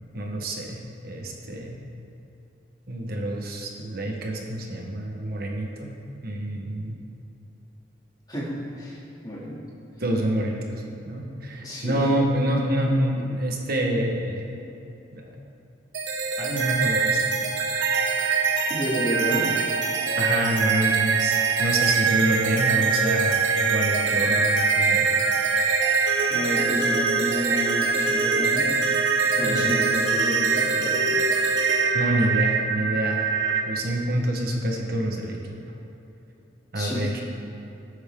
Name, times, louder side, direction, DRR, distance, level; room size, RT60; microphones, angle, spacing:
voice 1, 0.1-1.8 2.9-5.9 6.2-6.9 10.0-14.5 15.1-15.4 16.4-17.3 20.2-25.1 29.3-29.7 31.9-33.3 33.6-35.6 36.7-37.2, right 1 dB, 50° right, 0 dB, 1.3 m, -27 dB
voice 2, 8.3-9.6 11.6-12.1 18.7-19.7 26.3-28.7 29.3-31.2 36.7-37.1, equal, 20° left, -6 dB, 2.6 m, -30 dB
sound 1, 15.9-33.6, right 5 dB, 75° right, 1.3 m, -23 dB
19.5 x 8.4 x 3.8 m, 2.8 s
head